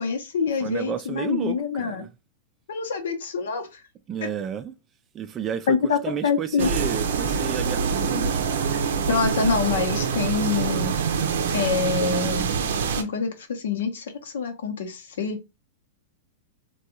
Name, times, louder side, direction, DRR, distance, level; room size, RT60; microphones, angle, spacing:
voice 1, 0.0-2.1 2.7-3.8 4.2-4.3 5.7-6.7 9.1-11.0 11.5-12.5 13.0-15.4, left 5 dB, 80° left, 0.8 m, -26 dB
voice 2, 0.6-2.1 4.1-4.7 5.1-5.8 6.0-8.5, right 8 dB, 25° right, 0.3 m, -31 dB
sound 1, 6.6-13.0, right 6 dB, 75° right, 0.5 m, -25 dB
3.5 x 2.3 x 2.7 m
hypercardioid pair, 135°, 0 cm